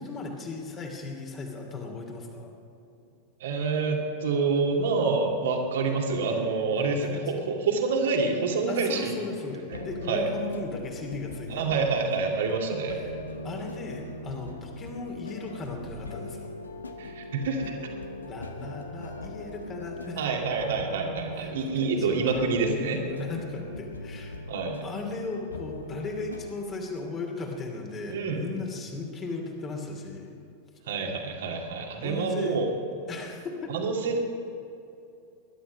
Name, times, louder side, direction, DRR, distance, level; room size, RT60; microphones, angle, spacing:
voice 1, 0.0-2.5 6.7-7.5 8.7-11.8 13.0-13.2 13.4-16.5 18.3-20.2 21.3-21.5 21.8-24.3 24.8-30.4 32.0-32.6 33.1-33.7, left 3 dB, 25° left, 2 dB, 2.7 m, -37 dB
voice 2, 3.4-9.1 9.7-9.8 10.1-10.3 11.5-13.0 17.0-17.8 20.2-23.0 24.5-24.8 28.1-28.4 30.9-32.7 33.7-34.2, right 4 dB, 60° right, 2 dB, 2.2 m, -27 dB
sound 1, 9.7-26.5, left 1 dB, 75° left, 1.0 m, -40 dB
20.5 x 11.5 x 5.4 m, 2.7 s
figure-of-eight pair, 90°, 0 cm